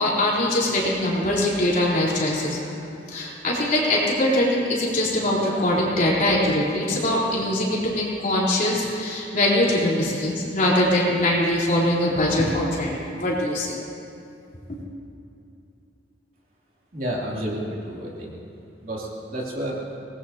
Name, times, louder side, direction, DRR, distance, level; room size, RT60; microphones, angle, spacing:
voice 1, 0.0-2.7 3.1-13.8 14.7-14.8, left 1 dB, 50° left, -6 dB, 3.8 m, -22 dB
voice 2, 16.9-18.4 18.8-19.8, right 1 dB, 55° right, -4 dB, 3.1 m, -30 dB
24.0 x 19.5 x 2.9 m, 2.7 s
head